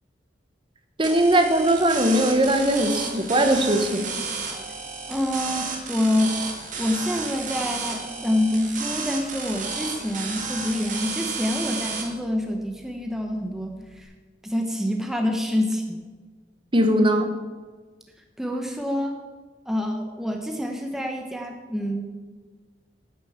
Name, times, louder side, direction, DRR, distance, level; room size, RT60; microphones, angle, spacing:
voice 1, 1.0-4.0 16.7-17.3, right 1 dB, 30° right, 6 dB, 1.1 m, -20 dB
sound 1, 1.0-12.0, right 4 dB, 45° right, 2.2 m, -32 dB
voice 2, 5.1-6.4 6.8-14.1 14.4-16.0 18.4-19.2 19.7-22.0, left 1 dB, ahead, 2 dB, 0.9 m, -27 dB
9.4 x 8.9 x 7.3 m, 1.4 s
head